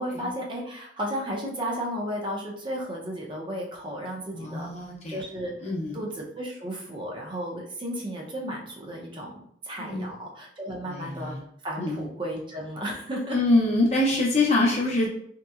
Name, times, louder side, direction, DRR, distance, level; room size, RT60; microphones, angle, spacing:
voice 1, 0.0-4.7 5.1-5.5 5.9-11.3 11.6-13.4 14.6-14.7, equal, 30° right, -1 dB, 0.6 m, -34 dB
voice 2, 4.3-5.2 5.6-5.9 9.8-10.1 10.9-11.4 11.8-12.0 13.3-15.1, left 2 dB, 40° left, -3 dB, 0.6 m, -25 dB
3.1 x 2.9 x 2.4 m, 0.67 s
head